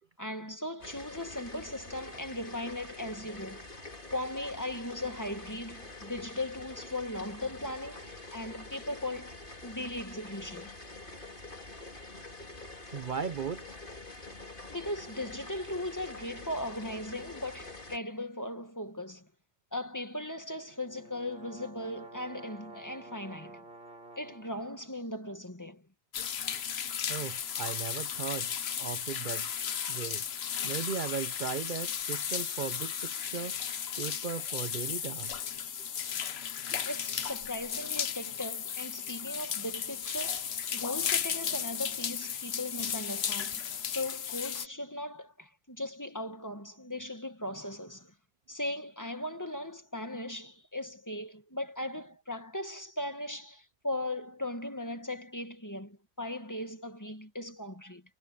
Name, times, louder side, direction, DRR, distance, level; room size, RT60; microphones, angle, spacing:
voice 1, 0.2-3.7 4.1-9.4 9.6-10.7 14.7-19.3 19.7-23.6 24.1-25.9 36.9-43.6 43.9-48.1 48.5-58.0, left 1 dB, 15° left, 1.7 m, -38 dB
sound 1, 0.8-18.0, left 2 dB, 55° left, 2.8 m, -46 dB
voice 2, 12.9-13.8 27.1-28.5 28.8-29.5 29.9-30.2 30.6-33.6 34.0-35.4 36.8-36.9, right 6 dB, 50° right, 0.8 m, -37 dB
sound 2, 20.7-24.6, right 2 dB, 70° right, 4.0 m, -50 dB
sound 3, 26.1-44.7, left 8 dB, 75° left, 1.1 m, -35 dB
omnidirectional pair, 1.1 m